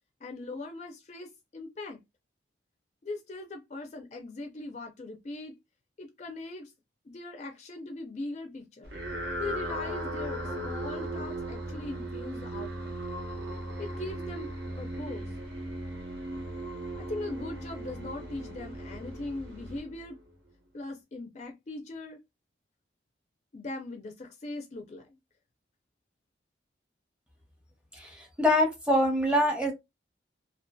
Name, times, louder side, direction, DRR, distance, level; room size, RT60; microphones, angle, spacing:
voice 1, 0.2-2.0 3.0-5.5 6.0-6.7 7.1-8.9 9.4-13.0 13.8-14.5 14.8-15.3 17.0-20.2 20.7-22.2 23.5-25.2, left 2 dB, 40° left, 0.4 m, -40 dB
sound 1, 8.8-20.3, right 1 dB, 70° right, 0.8 m, -37 dB
voice 2, 27.9-29.7, left 1 dB, 5° right, 0.7 m, -25 dB
2.5 x 2.3 x 2.2 m
head